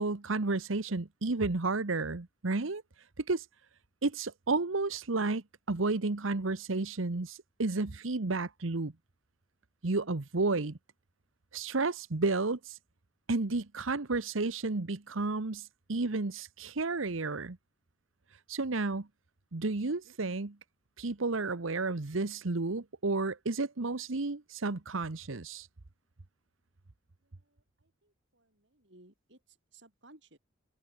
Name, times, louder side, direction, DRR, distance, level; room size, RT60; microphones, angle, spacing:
voice 1, 0.0-2.8 3.3-3.4 4.0-8.9 9.8-10.8 11.5-12.8 13.3-17.6 18.5-19.1 19.5-20.6 21.0-25.7, right 3 dB, 85° right, 1.1 m, -32 dB
voice 2, 27.2-30.4, right 2 dB, 60° right, 6.6 m, -61 dB
head